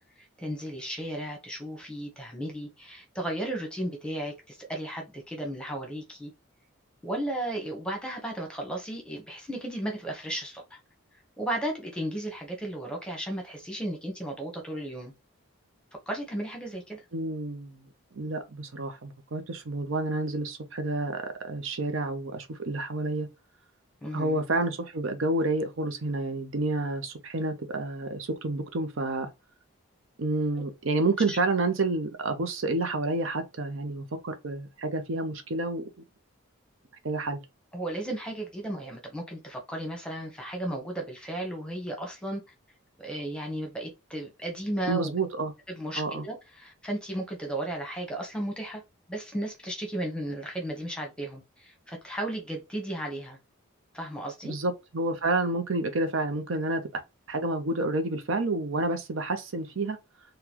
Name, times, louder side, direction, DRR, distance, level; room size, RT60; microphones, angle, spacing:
voice 1, 0.2-6.3 7.0-10.8 11.4-15.1 16.1-17.1 24.0-24.4 31.3-31.4 37.7-42.4 43.0-45.1 45.7-48.8 49.1-53.4 53.9-54.5, right 1 dB, 5° left, 1.0 m, -34 dB
voice 2, 17.1-17.9 18.1-23.3 24.1-29.3 30.2-35.9 37.0-37.4 44.9-45.5 45.9-46.2 54.4-57.0 57.3-60.0, right 2 dB, 65° right, 0.6 m, -29 dB
3.8 x 2.3 x 2.9 m
head